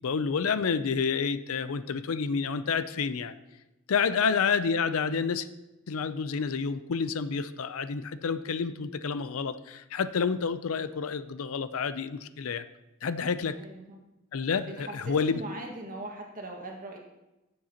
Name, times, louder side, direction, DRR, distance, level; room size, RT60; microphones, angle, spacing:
voice 1, 0.0-3.4 3.9-5.5 5.9-12.6 13.0-13.6 14.3-15.4, left 5 dB, 75° left, 13 dB, 0.5 m, -29 dB
voice 2, 4.1-4.5 13.5-14.0 14.6-17.0, right 1 dB, 35° right, 0 dB, 1.6 m, -41 dB
15.5 x 7.6 x 2.9 m, 0.98 s
head